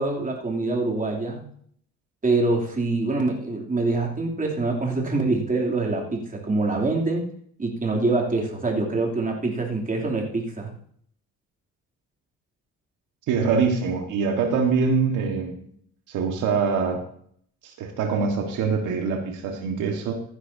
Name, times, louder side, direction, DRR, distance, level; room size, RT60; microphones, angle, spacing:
voice 1, 0.0-1.4 2.2-7.3 7.6-10.7, right 3 dB, 25° right, -1 dB, 3.0 m, -25 dB
voice 2, 13.3-15.7 16.1-17.0 17.6-20.2, right 5 dB, 90° right, 3 dB, 1.7 m, -24 dB
15.0 x 10.0 x 2.8 m, 0.62 s
cardioid pair, 90°, 30 cm